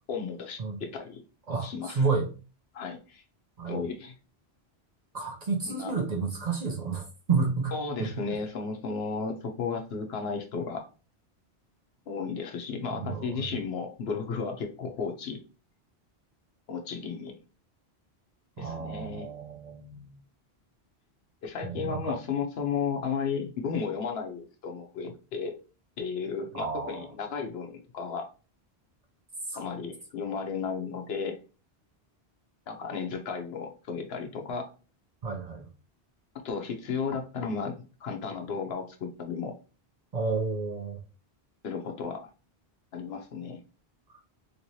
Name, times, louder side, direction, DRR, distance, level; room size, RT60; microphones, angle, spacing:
voice 1, 0.1-1.2 1.6-2.1 2.7-3.2 3.7-4.1 5.7-5.9 7.7-10.9 12.1-15.4 16.7-17.3 18.6-19.3 21.4-25.6 26.0-28.3 29.5-31.4 32.7-34.7 36.4-37.8 38.0-39.6 41.6-42.3 42.9-43.6, left 5 dB, 70° left, 0.9 m, -34 dB
voice 2, 1.5-2.3 3.6-3.8 5.1-7.7 8.0-8.1 13.0-13.4 18.6-20.1 21.6-22.2 26.5-27.1 29.5-29.6 35.2-35.6 40.1-41.0, right 4 dB, 45° right, 0.6 m, -31 dB
3.1 x 3.0 x 2.6 m
omnidirectional pair, 1.1 m